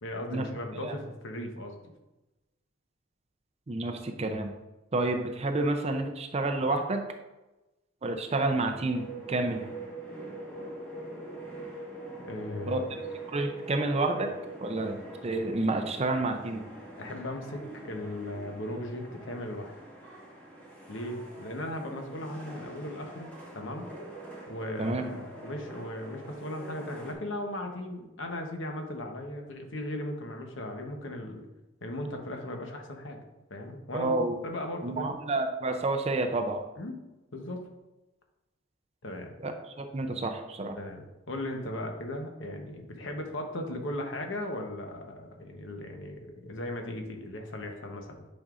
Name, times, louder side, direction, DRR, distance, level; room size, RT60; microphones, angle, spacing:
voice 1, 0.0-1.7 12.3-12.8 17.0-19.7 20.9-23.9 24.5-31.4 31.8-33.2 33.5-34.1 34.4-35.1 36.8-37.0 37.3-37.7 39.0-39.3 40.8-48.3, left 1 dB, 60° left, 3 dB, 1.0 m, -37 dB
voice 2, 3.7-4.5 4.9-7.0 8.0-9.6 12.7-12.8 13.3-14.3 14.6-16.6 24.8-25.1 33.9-34.4 34.8-36.6 39.4-39.5 39.8-40.8, right 2 dB, 30° right, 5 dB, 0.5 m, -29 dB
sound 1, 8.9-27.1, right 2 dB, 10° left, 1.4 m, -44 dB
8.8 x 5.3 x 2.5 m, 1.0 s
head